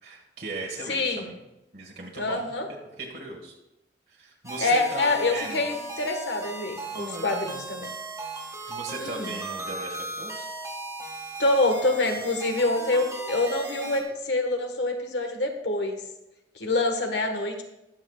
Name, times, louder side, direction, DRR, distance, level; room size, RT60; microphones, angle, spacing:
voice 1, 0.0-1.4 1.7-2.5 3.0-3.5 4.1-5.7 6.9-7.6 8.4-10.5, right 3 dB, 60° right, -1 dB, 1.6 m, -38 dB
voice 2, 0.9-1.3 2.2-2.7 4.6-7.9 9.0-9.3 11.4-16.0 16.6-17.6, left 2 dB, 75° left, 5 dB, 1.4 m, -26 dB
sound 1, 4.4-14.0, right 2 dB, 15° right, 1.7 m, -37 dB
21.0 x 7.1 x 2.4 m, 0.94 s
head